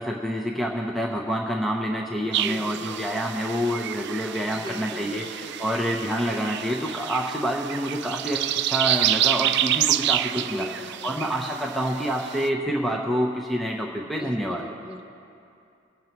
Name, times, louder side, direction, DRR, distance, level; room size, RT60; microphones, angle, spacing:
voice 1, 0.0-10.6 11.0-14.6, equal, ahead, 0 dB, 0.7 m, -27 dB
voice 2, 2.2-2.9 4.4-5.5 10.4-11.3 14.2-15.0, left 2 dB, 25° left, 2 dB, 1.0 m, -39 dB
sound 1, 2.3-12.5, right 12 dB, 60° right, 0.3 m, -28 dB
23.5 x 9.2 x 3.0 m, 2.6 s
head